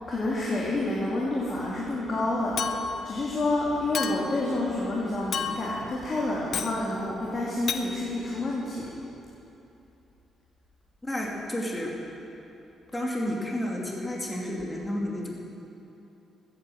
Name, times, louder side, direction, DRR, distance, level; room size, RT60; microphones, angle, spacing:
voice 1, 0.1-2.6 3.0-8.9, left 2 dB, 40° left, -5 dB, 2.7 m, -28 dB
Chink clink, 2.6-3.1 3.9-4.4 5.3-5.8 6.5-6.8 7.7-7.9, left 6 dB, 60° left, 0.9 m, -31 dB
voice 2, 11.0-11.9 12.9-15.3, left 1 dB, 15° left, -2 dB, 2.6 m, -31 dB
14.5 x 9.6 x 7.9 m, 2.9 s
cardioid pair, 90°, 0 cm